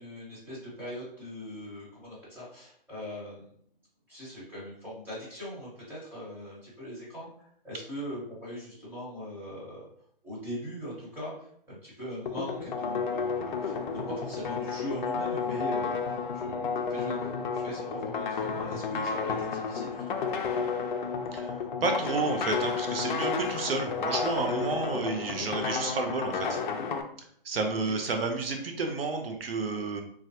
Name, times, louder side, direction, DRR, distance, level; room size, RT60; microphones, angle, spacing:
voice 1, 0.0-3.4 4.1-9.9 10.2-16.0 16.3-20.6 27.9-28.0, equal, 5° right, -8 dB, 1.0 m, -40 dB
sound 1, 12.3-27.0, left 5 dB, 55° left, 0.4 m, -32 dB
voice 2, 21.3-26.6 27.4-30.0, right 3 dB, 75° right, 5 dB, 0.6 m, -31 dB
3.3 x 2.3 x 2.7 m, 0.64 s
hypercardioid pair, 145°, 29 cm